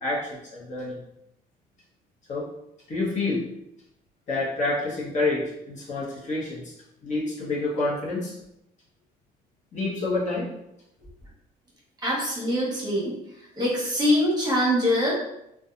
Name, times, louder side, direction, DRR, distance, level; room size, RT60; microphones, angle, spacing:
voice 1, 0.0-1.0 2.3-2.5 2.9-3.5 4.3-6.7 7.0-8.4 9.7-10.5, left 2 dB, 45° left, -5 dB, 0.9 m, -28 dB
voice 2, 12.0-15.1, equal, 25° right, -5 dB, 1.1 m, -24 dB
2.7 x 2.3 x 2.4 m, 0.82 s
cardioid pair, 110°, 17 cm